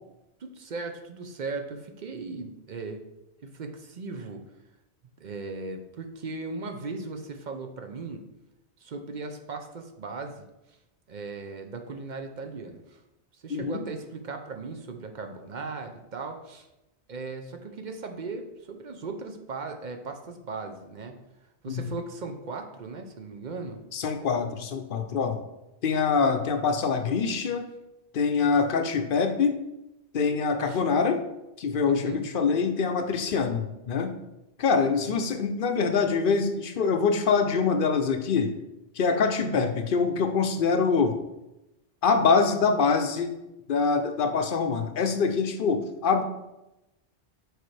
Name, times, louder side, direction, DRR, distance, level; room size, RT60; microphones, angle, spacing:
voice 1, 0.4-3.0 3.4-4.4 5.2-8.2 8.8-10.5 11.1-13.0 13.4-16.7 17.1-21.2 21.6-23.8 30.7-30.8 31.9-32.2 34.8-35.2 39.4-39.7, right 3 dB, 50° right, 5 dB, 0.7 m, -37 dB
voice 2, 13.5-13.8 21.7-21.9 23.9-25.4 25.8-27.7 28.1-29.6 30.1-31.2 31.6-34.1 34.6-38.5 39.0-41.2 42.0-43.3 43.7-46.2, left 5 dB, 55° left, 6 dB, 0.7 m, -24 dB
6.5 x 4.8 x 3.2 m, 0.93 s
omnidirectional pair, 1.1 m